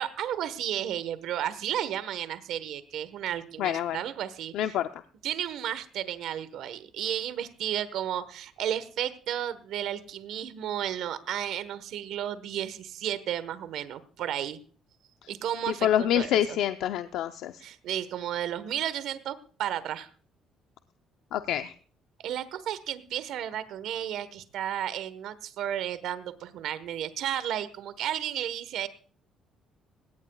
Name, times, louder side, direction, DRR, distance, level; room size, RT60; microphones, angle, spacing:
voice 1, 0.0-4.8 5.2-14.6 15.3-16.6 17.6-20.1 22.2-28.9, right 10 dB, 75° right, 14 dB, 1.2 m, -33 dB
voice 2, 3.6-4.0 4.5-4.9 15.8-17.5 21.3-21.7, left 11 dB, 80° left, 9 dB, 0.6 m, -26 dB
19.0 x 17.5 x 2.3 m, 0.43 s
cardioid pair, 100°, 0 cm